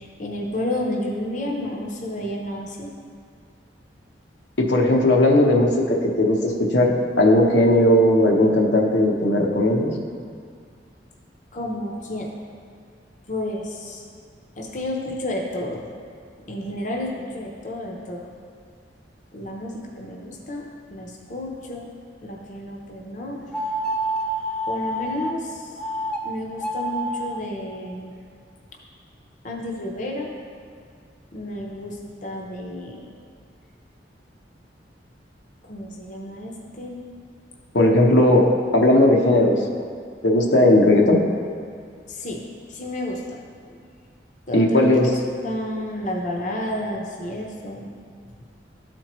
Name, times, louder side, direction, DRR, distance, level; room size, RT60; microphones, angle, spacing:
voice 1, 0.0-2.9 11.5-12.3 13.3-14.0 14.6-15.9 16.5-18.2 19.3-20.6 20.9-21.9 22.2-23.4 24.7-25.7 26.2-28.1 29.4-30.3 31.3-32.0 32.2-33.1 35.7-37.0 42.1-42.4 42.7-43.4 43.7-43.8 44.5-45.1 45.4-47.9, left 1 dB, 45° left, -1 dB, 0.7 m, -31 dB
voice 2, 4.6-9.9 37.7-39.6 40.2-41.2 44.5-45.1, left 1 dB, 75° left, 0 dB, 0.8 m, -17 dB
sound 1, 23.5-25.3 25.8-26.2 26.5-27.4, right 1 dB, 5° left, 0.5 m, -27 dB
13.0 x 4.4 x 3.0 m, 2.1 s
head